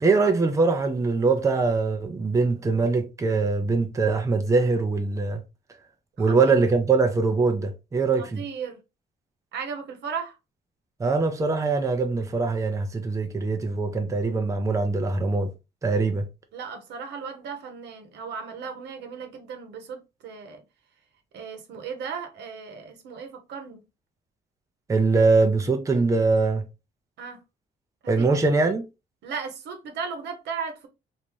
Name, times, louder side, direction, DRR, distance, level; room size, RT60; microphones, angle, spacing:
voice 1, 0.0-5.4 6.2-8.4 11.0-15.5 15.8-16.3 24.9-26.6 28.1-28.9, right 3 dB, 20° right, 0.5 m, -22 dB
voice 2, 6.2-6.6 8.2-8.8 9.5-10.4 16.5-20.0 20.2-20.6 21.3-23.8 27.2-27.4 28.0-28.3 29.2-30.9, right 6 dB, 85° right, 1.0 m, -36 dB
3.4 x 2.6 x 3.1 m
cardioid pair, 135°, 17 cm